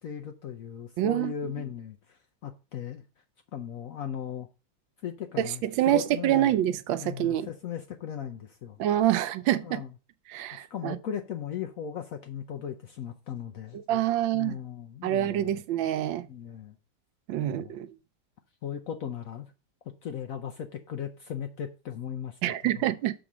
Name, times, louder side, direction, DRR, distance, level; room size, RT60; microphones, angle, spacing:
voice 1, 0.0-3.0 3.5-4.5 5.0-6.6 7.0-8.8 9.6-9.9 10.7-13.8 14.3-15.6 16.3-16.7 17.4-17.7 18.6-19.5 20.0-22.4 22.8-22.9, left 8 dB, 65° left, 0.8 m, -37 dB
voice 2, 1.0-1.3 5.4-7.5 8.8-9.8 10.3-11.0 13.9-14.6 15.0-16.3 17.3-17.9 22.4-23.1, right 12 dB, 85° right, 1.4 m, -26 dB
7.0 x 3.8 x 6.0 m
omnidirectional pair, 2.0 m